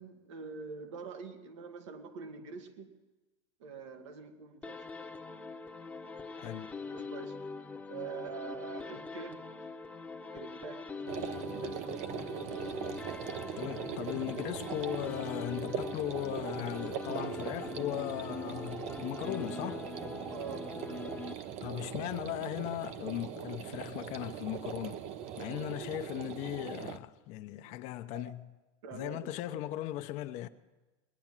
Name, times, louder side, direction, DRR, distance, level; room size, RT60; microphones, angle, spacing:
voice 1, 0.0-3.0 3.6-4.9 6.9-7.4 7.9-9.7 10.3-11.9 20.3-20.8 21.5-21.8 27.7-27.8 28.1-28.4 28.8-29.3, right 6 dB, 80° right, 1.7 m, -45 dB
sound 1, 4.6-21.8, left 4 dB, 10° left, 1.0 m, -43 dB
voice 2, 6.4-6.7 13.6-19.8 21.6-25.0 25.4-28.5 28.9-30.5, left 14 dB, 50° left, 0.8 m, -38 dB
sound 2, 11.1-27.0, right 9 dB, 45° right, 0.8 m, -41 dB
20.5 x 9.5 x 7.4 m
supercardioid pair, 130°, 15 cm